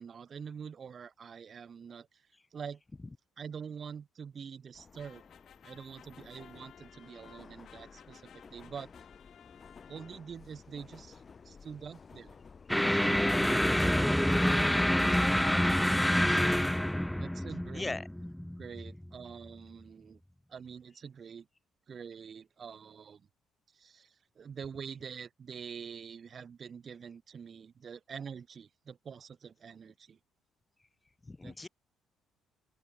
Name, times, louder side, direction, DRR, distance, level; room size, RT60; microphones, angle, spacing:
voice 1, 0.0-2.2 2.5-2.8 3.4-5.2 5.6-8.9 9.9-12.4 12.7-14.1 14.4-16.5 17.1-18.0 18.6-20.2 20.5-21.5 21.9-23.3 23.7-30.2 31.4-31.7, right 6 dB, 45° right, 2.4 m, -46 dB
Subway metro underground, 4.7-16.8, left 5 dB, 40° left, 5.7 m, -55 dB
sound 1, 5.0-10.5, left 10 dB, 65° left, 6.7 m, -58 dB
sound 2, 12.7-19.1, left 1 dB, 5° left, 1.7 m, -27 dB
voice 2, 17.7-18.1 31.2-31.7, left 3 dB, 20° left, 2.2 m, -38 dB
open air
supercardioid pair, 70°, 0 cm